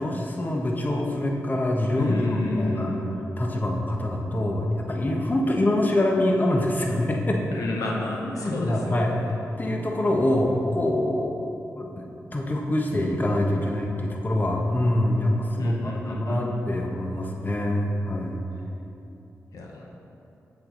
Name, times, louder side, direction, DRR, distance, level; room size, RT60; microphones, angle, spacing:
voice 1, 0.0-7.4 8.2-9.2 9.6-11.4 11.8-12.1 12.3-18.4, left 1 dB, 30° left, 0 dB, 1.1 m, -25 dB
voice 2, 2.0-3.1 7.5-9.2 15.6-16.5 19.5-19.9, left 2 dB, 85° left, -1 dB, 0.9 m, -31 dB
7.7 x 7.3 x 3.9 m, 2.9 s
cardioid pair, 60°, 6 cm